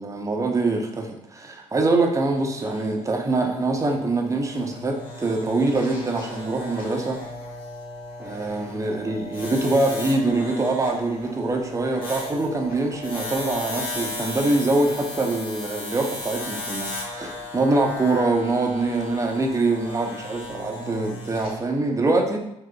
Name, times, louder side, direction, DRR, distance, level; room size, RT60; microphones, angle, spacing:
voice 1, 0.0-7.2 8.2-22.4, right 2 dB, 20° right, 3 dB, 0.6 m, -24 dB
sound 1, 2.3-21.6, left 2 dB, 60° left, 1.0 m, -36 dB
3.6 x 2.9 x 2.2 m, 0.82 s
figure-of-eight pair, 45°, 17 cm